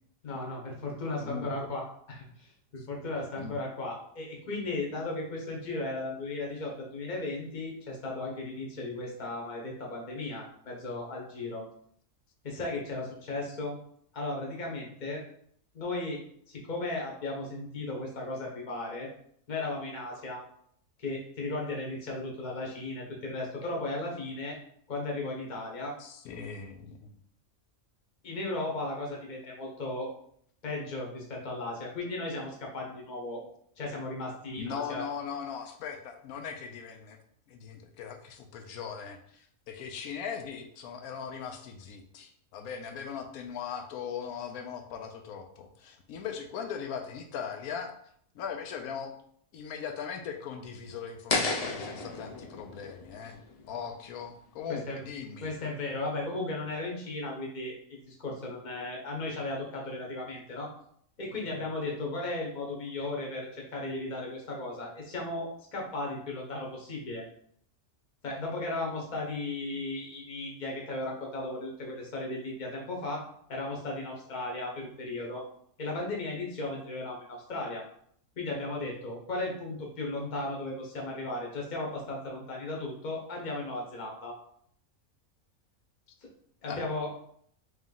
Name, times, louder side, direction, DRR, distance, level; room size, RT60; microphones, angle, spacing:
voice 1, 0.2-11.7 12.4-13.8 14.1-15.2 15.7-16.2 16.5-19.1 19.5-20.4 21.0-24.6 24.9-25.9 28.2-30.1 30.6-33.4 33.8-35.0 54.7-55.0 55.4-60.7 61.2-67.2 68.2-73.2 73.5-75.4 75.8-77.8 78.4-84.4 86.6-87.1, left 2 dB, 35° left, -1 dB, 1.0 m, -36 dB
voice 2, 1.2-1.8 2.8-2.9 3.4-3.6 26.0-27.2 34.6-37.2 37.5-47.9 48.3-49.1 49.5-53.4 53.6-55.6 86.7-86.8, left 7 dB, 90° left, 5 dB, 1.1 m, -39 dB
sound 1, 51.3-54.3, left 3 dB, 65° left, 0.3 m, -33 dB
3.2 x 3.1 x 3.7 m, 0.64 s
omnidirectional pair, 1.5 m